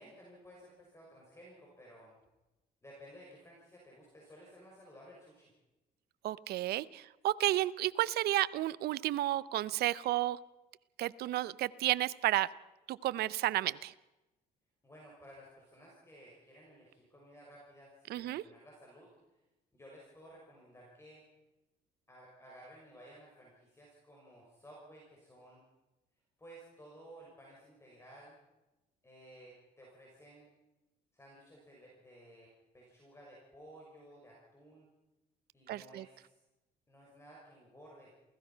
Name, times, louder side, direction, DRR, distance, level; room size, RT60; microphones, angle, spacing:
voice 1, 0.0-2.2 2.8-5.5 14.8-19.1 19.7-21.2 22.1-25.6 26.4-28.4 29.0-30.5 31.1-32.5 32.7-34.9 35.5-36.4 36.9-38.1, equal, 15° left, -3 dB, 6.1 m, -56 dB
voice 2, 6.2-10.4 11.0-12.5 12.9-13.9 18.1-18.4 35.7-36.0, right 15 dB, 70° right, 17 dB, 0.7 m, -32 dB
28.0 x 16.0 x 5.8 m, 1.0 s
cardioid pair, 110°, 17 cm